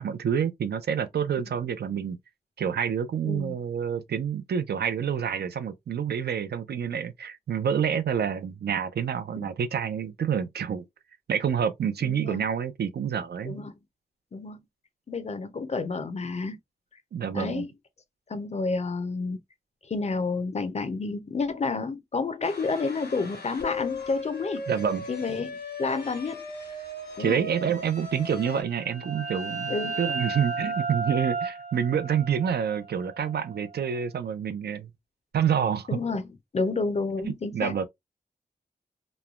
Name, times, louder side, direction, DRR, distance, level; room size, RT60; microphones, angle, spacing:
voice 1, 0.0-2.2 2.6-10.8 11.3-13.6 17.1-17.7 24.7-25.0 27.2-34.9 35.3-36.0 37.2-37.9, right 8 dB, 85° right, 0.4 m, -28 dB
voice 2, 3.2-3.6 9.4-9.5 12.0-12.4 13.4-13.7 14.3-14.6 15.1-16.6 17.3-17.7 18.3-19.4 19.8-24.6 25.1-26.5 27.2-27.4 29.7-30.0 35.9-36.3 36.5-37.9, left 4 dB, 45° left, 0.5 m, -30 dB
sound 1, 22.4-28.6, left 2 dB, 90° left, 1.1 m, -38 dB
sound 2, 28.5-34.0, right 4 dB, 45° right, 0.8 m, -34 dB
3.1 x 2.1 x 2.3 m
wide cardioid pair, 120°, 16 cm